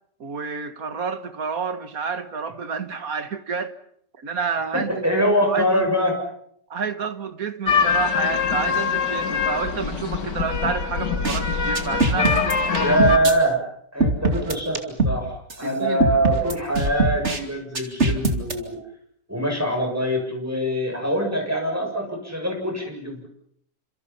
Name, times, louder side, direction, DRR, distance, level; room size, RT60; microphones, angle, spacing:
voice 1, 0.2-3.7 4.2-5.8 6.7-13.0 15.6-16.1, right 5 dB, 55° right, 2.1 m, -29 dB
voice 2, 4.7-6.1 12.8-13.6 13.9-18.8 19.3-23.3, equal, 10° right, 7.2 m, -23 dB
sound 1, 7.7-13.2, left 6 dB, 85° left, 2.5 m, -23 dB
sound 2, 11.1-11.4 11.7-13.3 14.0-15.2 15.5-15.6 16.0-17.4 17.7-18.5, right 2 dB, 40° right, 2.9 m, -22 dB
30.0 x 27.0 x 5.7 m
omnidirectional pair, 1.8 m